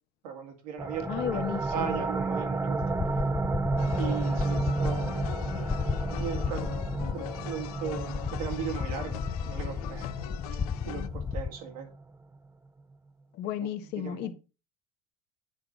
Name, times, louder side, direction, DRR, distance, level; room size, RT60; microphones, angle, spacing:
voice 1, 0.2-2.8 4.0-5.3 6.0-6.8 7.1-9.2 9.5-10.1 10.8-11.9 13.6-14.3, right 7 dB, 85° right, 2.3 m, -37 dB
sound 1, 0.8-12.1, right 3 dB, 15° right, 0.7 m, -32 dB
voice 2, 1.1-2.0 13.4-14.3, left 10 dB, 60° left, 1.3 m, -33 dB
sound 2, 2.8-11.5, left 5 dB, 20° left, 0.5 m, -34 dB
sound 3, 3.8-11.1, left 15 dB, 85° left, 0.5 m, -41 dB
9.0 x 3.8 x 6.1 m
hypercardioid pair, 80°, 19 cm